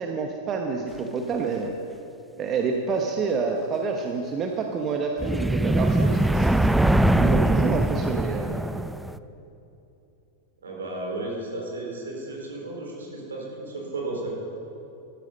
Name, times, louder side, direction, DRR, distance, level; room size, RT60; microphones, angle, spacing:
voice 1, 0.0-1.7 2.4-6.7 7.1-8.5, right 5 dB, 30° right, 3 dB, 1.1 m, -28 dB
sound 1, 5.2-9.2, right 1 dB, 5° right, 0.4 m, -22 dB
voice 2, 10.6-14.3, right 2 dB, 70° right, -1 dB, 4.0 m, -34 dB
14.0 x 13.5 x 5.3 m, 2.9 s
figure-of-eight pair, 90°, 0 cm